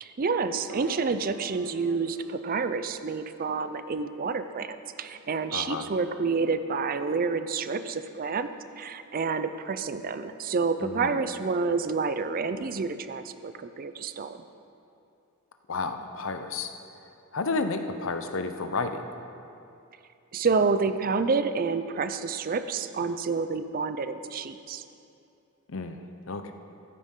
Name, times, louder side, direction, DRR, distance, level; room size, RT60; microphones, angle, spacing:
voice 1, 0.0-8.5 8.8-14.4 20.3-24.8, right 4 dB, 40° right, 11 dB, 0.4 m, -29 dB
Piano, 0.7-7.1, right 1 dB, 65° right, 1.2 m, -50 dB
voice 2, 5.5-5.9 10.8-11.2 15.7-16.7 17.3-19.1 25.7-26.0 26.3-26.5, left 3 dB, 60° left, 8 dB, 0.7 m, -31 dB
13.5 x 9.7 x 3.8 m, 2.6 s
head